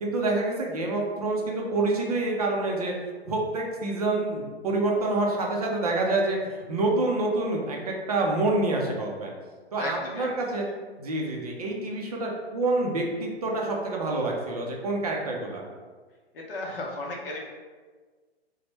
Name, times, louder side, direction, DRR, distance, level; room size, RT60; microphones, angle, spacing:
voice 1, 0.0-2.9 3.2-9.3 9.7-10.7 11.0-15.6, right 2 dB, 35° right, -1 dB, 0.4 m, -27 dB
voice 2, 9.8-10.3 16.3-17.4, left 2 dB, 55° left, -1 dB, 0.7 m, -34 dB
2.9 x 2.1 x 3.1 m, 1.4 s
hypercardioid pair, 165°, 33 cm